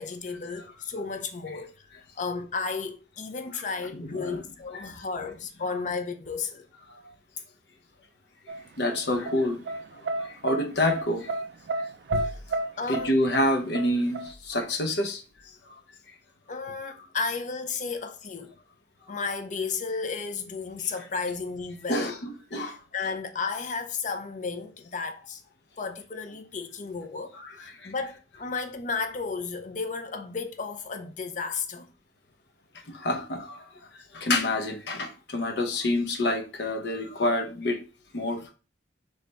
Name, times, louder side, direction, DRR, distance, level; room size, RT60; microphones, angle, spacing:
voice 1, 0.0-6.7 12.8-13.1 16.5-18.5 19.1-22.2 22.6-25.4 25.8-31.9, left 4 dB, 45° left, 0.5 m, -33 dB
voice 2, 3.9-4.4 4.7-4.9 8.8-9.6 10.0-11.3 12.1-12.3 12.9-15.2 21.9-22.8 27.3-27.9 32.9-33.7 34.1-37.8 38.1-38.5, left 1 dB, 75° left, 0.8 m, -28 dB
sound 1, 8.5-14.3, right 2 dB, 70° right, 0.4 m, -31 dB
3.3 x 3.3 x 3.9 m
head